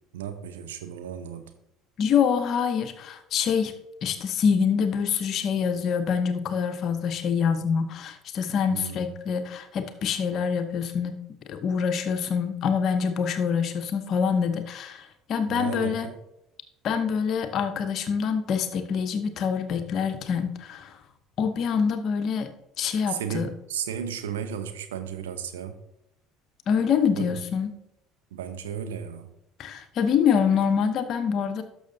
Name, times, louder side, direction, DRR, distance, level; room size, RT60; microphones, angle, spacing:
voice 1, 0.1-1.4 8.7-9.0 15.5-16.2 23.1-25.8 27.1-27.4 28.3-29.3, right 8 dB, 75° right, 8 dB, 0.7 m, -34 dB
voice 2, 2.0-3.7 4.0-11.2 11.5-16.1 16.8-20.9 21.4-22.5 22.8-23.5 26.7-27.7 29.6-31.6, left 6 dB, 50° left, 9 dB, 0.8 m, -25 dB
11.5 x 6.3 x 2.7 m, 0.83 s
hypercardioid pair, 65°, 0 cm